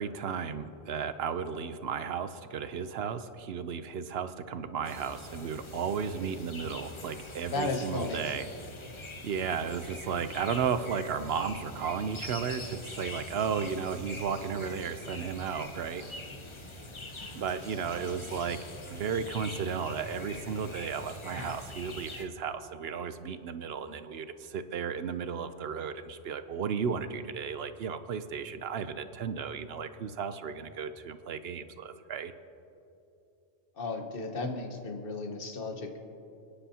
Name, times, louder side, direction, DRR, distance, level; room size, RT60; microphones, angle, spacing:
voice 1, 0.0-8.5 9.2-16.0 17.3-18.6 18.9-32.3, right 6 dB, 70° right, 11 dB, 0.8 m, -34 dB
sound 1, 4.8-22.2, left 2 dB, 30° left, 0.8 m, -44 dB
voice 2, 7.5-8.2 33.8-36.0, left 3 dB, 55° left, 4 dB, 1.4 m, -34 dB
29.5 x 10.0 x 2.8 m, 2.8 s
omnidirectional pair, 1.1 m